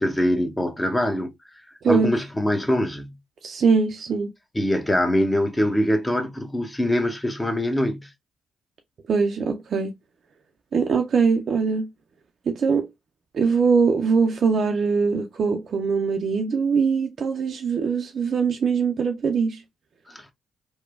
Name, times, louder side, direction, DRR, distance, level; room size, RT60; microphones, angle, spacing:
voice 1, 0.0-1.3 1.9-3.2 4.5-8.1 20.1-20.3, left 1 dB, 15° left, 0.7 m, -23 dB
voice 2, 1.8-2.1 3.4-4.3 9.1-9.9 10.7-11.9 12.5-12.9 13.3-19.6, right 5 dB, 60° right, 0.4 m, -22 dB
3.0 x 2.1 x 2.3 m
hypercardioid pair, 45°, 0 cm